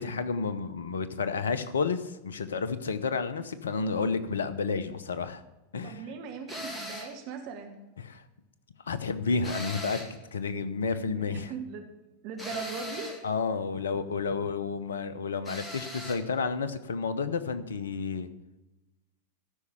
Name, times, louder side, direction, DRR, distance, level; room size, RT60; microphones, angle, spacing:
voice 1, 0.0-5.4 5.7-6.0 8.0-8.2 8.9-11.5 13.2-18.3, left 5 dB, 65° left, 13 dB, 0.8 m, -31 dB
voice 2, 5.8-7.8 11.1-11.9 12.2-13.1, right 5 dB, 45° right, 4 dB, 1.3 m, -39 dB
sound 1, 6.5-7.2 9.4-10.2 12.4-13.2 15.4-16.2, equal, 15° left, 2.0 m, -39 dB
13.0 x 5.5 x 6.7 m, 1.0 s
figure-of-eight pair, 90°, 0 cm